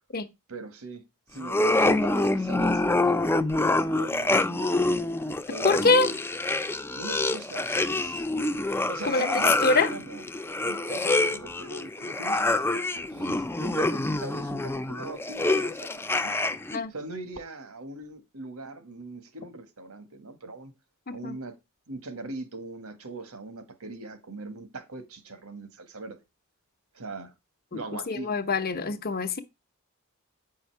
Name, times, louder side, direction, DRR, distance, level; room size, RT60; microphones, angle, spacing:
voice 1, 0.5-1.0 1.3-4.8 5.5-6.2 7.0-8.3 8.9-10.2 10.6-16.3 16.9-20.7 21.1-21.6 21.9-26.2 26.9-27.3 27.7-28.3, right 2 dB, 80° right, 1.7 m, -41 dB
sound 1, 1.4-16.8, left 2 dB, 10° left, 0.5 m, -26 dB
voice 2, 5.6-6.1 9.0-9.9 16.7-16.9 21.1-21.4 27.7-27.8 28.1-29.4, left 3 dB, 45° left, 1.0 m, -24 dB
9.0 x 5.6 x 4.7 m
head